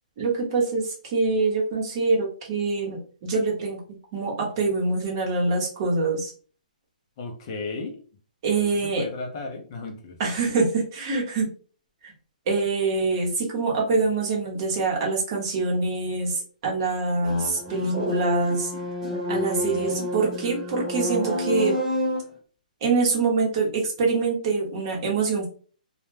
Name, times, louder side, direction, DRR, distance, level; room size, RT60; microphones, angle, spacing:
voice 1, 0.2-3.8 4.1-6.3 8.4-9.1 10.2-11.5 12.0-12.1 12.5-18.7 19.3-21.8 22.8-25.5, right 3 dB, 30° right, -1 dB, 0.8 m, -25 dB
voice 2, 7.2-8.0 9.0-10.2 19.3-20.0, left 3 dB, 30° left, 2 dB, 0.4 m, -35 dB
sound 1, 17.2-22.3, left 1 dB, 10° right, 1.0 m, -29 dB
2.1 x 2.1 x 3.1 m, 0.40 s
hypercardioid pair, 165°, 5 cm